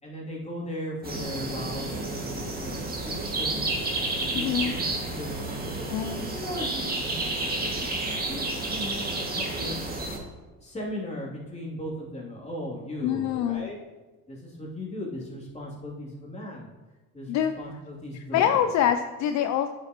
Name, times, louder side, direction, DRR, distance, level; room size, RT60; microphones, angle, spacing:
voice 1, 0.0-3.7 4.3-5.9 6.3-10.0 10.6-13.8 14.3-16.7 17.1-18.6, left 1 dB, 20° left, -4 dB, 2.9 m, -38 dB
sound 1, 1.0-10.2, right 2 dB, 30° right, 2.1 m, -31 dB
voice 2, 4.3-4.8 5.9-6.3 13.0-13.7 17.3-17.5 18.1-19.7, left 9 dB, 60° left, 8 dB, 0.5 m, -25 dB
9.4 x 7.3 x 3.0 m, 1.2 s
supercardioid pair, 75°, 32 cm